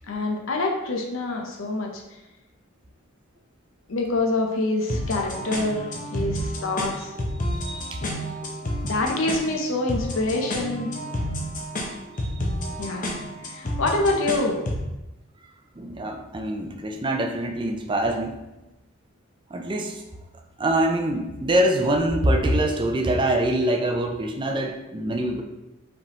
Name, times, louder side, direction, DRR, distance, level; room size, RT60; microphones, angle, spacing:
voice 1, 0.1-2.0 3.9-7.1 8.8-10.9 12.8-13.1 13.4-14.7, left 2 dB, 70° left, 1 dB, 0.6 m, -26 dB
sound 1, 4.9-14.9, equal, 40° left, 0.8 m, -31 dB
voice 2, 7.4-8.1 12.2-12.3 15.8-18.4 19.5-20.0 20.6-25.4, right 1 dB, 25° right, 3 dB, 0.5 m, -24 dB
4.9 x 3.4 x 3.0 m, 0.99 s
head